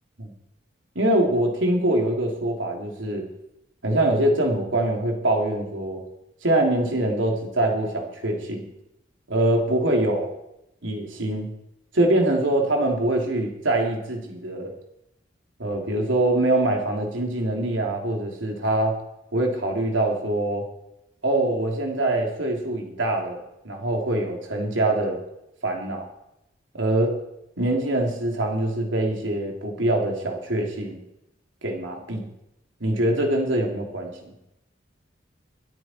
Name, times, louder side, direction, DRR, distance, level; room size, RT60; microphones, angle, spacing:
voice 1, 0.9-3.3 3.8-6.0 6.4-8.6 9.3-10.3 10.8-11.5 11.9-14.7 15.6-19.0 19.3-20.7 21.2-25.2 25.6-26.1 26.7-27.2 27.6-31.0 31.6-32.3 32.8-34.1, right 1 dB, 85° right, 1 dB, 3.3 m, -24 dB
24.0 x 8.8 x 4.6 m, 0.85 s
head